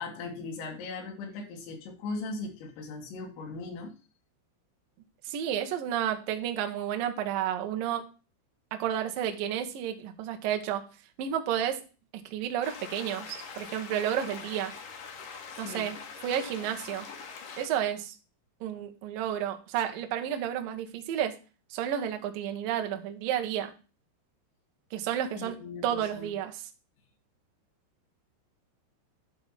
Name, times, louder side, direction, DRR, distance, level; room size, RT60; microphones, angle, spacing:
voice 1, 0.0-3.9 15.5-15.9 25.4-26.3, left 3 dB, 85° left, 2 dB, 4.8 m, -39 dB
voice 2, 5.2-8.0 8.8-10.8 11.2-11.8 12.1-14.7 15.6-16.0 16.2-17.1 17.6-18.2 18.6-21.4 21.7-23.7 24.9-25.6 25.8-26.6, right 10 dB, 80° right, 6 dB, 2.0 m, -31 dB
sound 1, 12.6-17.7, left 5 dB, 60° left, 2.4 m, -43 dB
10.5 x 3.7 x 5.7 m, 0.33 s
omnidirectional pair, 5.9 m